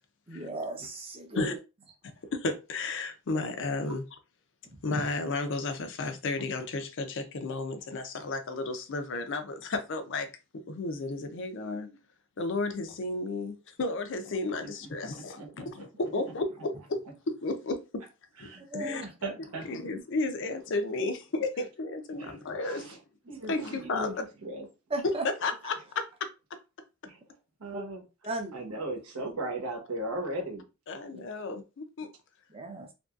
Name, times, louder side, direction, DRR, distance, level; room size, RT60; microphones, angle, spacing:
voice 1, 0.3-1.6 18.7-19.0 24.9-25.2 28.2-28.6 32.5-32.9, right 2 dB, 25° right, 0.6 m, -35 dB
voice 2, 2.3-4.0 4.8-10.3 10.5-12.0 12.4-17.0 17.3-18.0 18.4-19.0 19.7-23.0 23.5-24.1 25.0-25.1 25.4-26.3 30.9-32.1, left 3 dB, 55° left, 0.5 m, -33 dB
voice 3, 15.3-15.8 18.4-19.8 22.1-23.0 23.3-24.1 24.4-24.7 27.0-27.2 27.6-28.0 28.5-30.6, right 1 dB, 80° right, 0.9 m, -37 dB
2.9 x 2.6 x 2.3 m
head